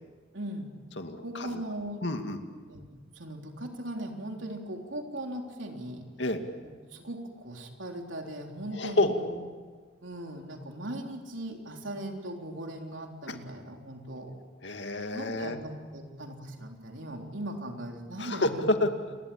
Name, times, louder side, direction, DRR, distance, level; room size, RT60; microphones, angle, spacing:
voice 1, 0.3-0.7 1.2-2.1 2.7-6.1 6.9-9.4 10.0-14.4 15.1-18.6, right 1 dB, 80° right, 2 dB, 3.7 m, -39 dB
voice 2, 1.0-1.5 2.0-2.4 6.2-6.4 8.7-9.1 13.3-13.4 14.6-15.6 18.2-18.5 18.8-19.2, left 2 dB, 65° left, 6 dB, 2.3 m, -29 dB
29.0 x 21.5 x 8.7 m, 1.5 s
head